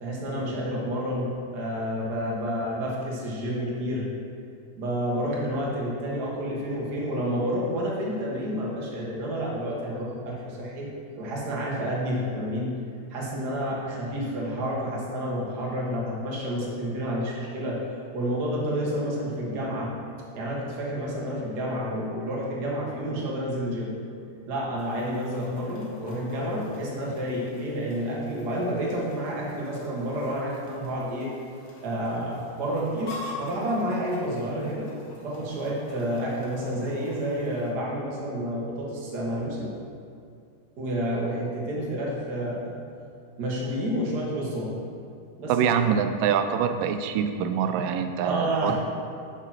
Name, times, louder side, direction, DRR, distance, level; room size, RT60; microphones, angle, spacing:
voice 1, 0.0-4.1 4.7-10.9 11.1-12.8 13.1-17.8 18.1-19.9 20.3-23.9 24.4-31.3 31.8-34.9 35.2-39.7 40.8-42.8 43.4-44.8 45.4-45.7 48.2-48.7, equal, 50° right, -4 dB, 1.2 m, -29 dB
Chicken rooster, 24.8-37.7, left 1 dB, 60° left, 1.3 m, -46 dB
voice 2, 45.5-48.7, right 7 dB, 80° right, 7 dB, 2.1 m, -25 dB
6.9 x 5.9 x 5.8 m, 2.4 s
omnidirectional pair, 4.0 m